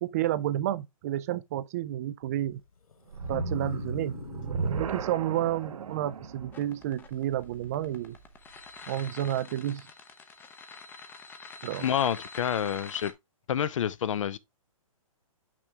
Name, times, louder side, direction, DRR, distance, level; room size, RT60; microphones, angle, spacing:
voice 1, 0.0-2.6 3.3-4.1 4.8-8.2 8.9-9.9 11.6-11.9, right 13 dB, 30° right, 0.4 m, -30 dB
Wild animals, 2.2-7.2, left 7 dB, 85° left, 0.9 m, -44 dB
sound 1, 3.1-8.4, right 5 dB, 70° right, 1.1 m, -36 dB
sound 2, 6.5-13.1, left 4 dB, 10° left, 0.6 m, -45 dB
voice 2, 11.8-13.1 13.5-14.4, left 9 dB, 60° left, 0.7 m, -28 dB
6.0 x 5.9 x 3.4 m
hypercardioid pair, 150°, 18 cm